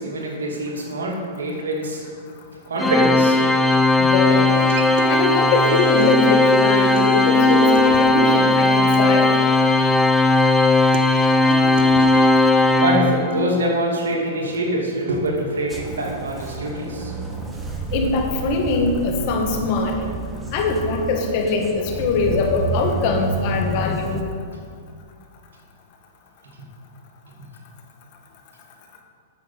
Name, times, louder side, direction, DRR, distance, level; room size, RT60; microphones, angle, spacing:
voice 1, 0.0-2.1 2.7-3.4 12.8-17.1, right 1 dB, 80° right, -1 dB, 2.7 m, -24 dB
Organ, 2.8-13.6, left 2 dB, 5° left, 0.7 m, -17 dB
voice 2, 4.0-4.5 5.1-9.3 17.9-20.0 20.5-24.2, left 3 dB, 50° left, 2 dB, 2.0 m, -22 dB
Human voice / Acoustic guitar, 4.5-12.5, right 5 dB, 60° right, 1.0 m, -30 dB
sound 1, 15.7-24.2, right 3 dB, 15° right, 1.3 m, -30 dB
9.5 x 7.3 x 7.2 m, 2.2 s
hypercardioid pair, 120°, 0 cm